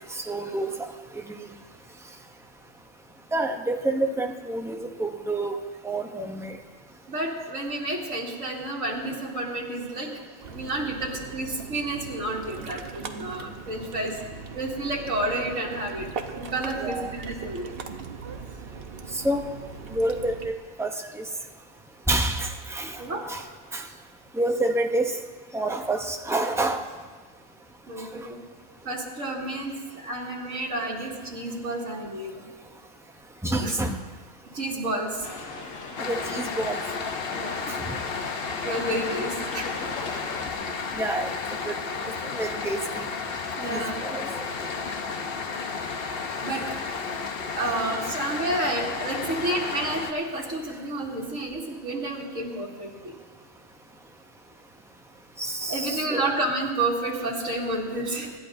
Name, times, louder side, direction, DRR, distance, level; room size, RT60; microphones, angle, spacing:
voice 1, 0.1-0.7 1.2-1.3 3.3-5.6 5.8-6.6 13.2-13.3 16.8-17.1 19.1-19.5 19.9-20.9 21.1-21.2 22.1-23.0 23.3-23.4 23.7-23.8 24.4-25.1 25.5-26.8 33.4-34.0 36.0-36.8 37.9-38.0 38.9-39.0 40.9-41.3 41.7-41.8 42.3-43.0 43.7-44.5 55.4-56.3, right 1 dB, 5° right, 3 dB, 0.4 m, -28 dB
voice 2, 7.1-10.2 10.5-12.8 13.1-14.2 14.5-16.1 16.4-17.7 23.0-23.2 27.9-28.4 28.8-32.4 33.6-33.7 34.5-35.3 37.3-37.7 38.6-39.7 43.6-44.0 46.4-46.6 47.5-53.1 55.7-58.3, right 1 dB, 75° right, -3 dB, 2.4 m, -30 dB
Ocean, 10.4-20.5, right 5 dB, 55° right, 0.9 m, -40 dB
sound 1, 35.2-40.5, left 4 dB, 85° left, 1.5 m, -38 dB
sound 2, 36.0-50.1, left 5 dB, 50° left, 0.9 m, -32 dB
25.5 x 11.5 x 2.6 m, 1.4 s
omnidirectional pair, 1.4 m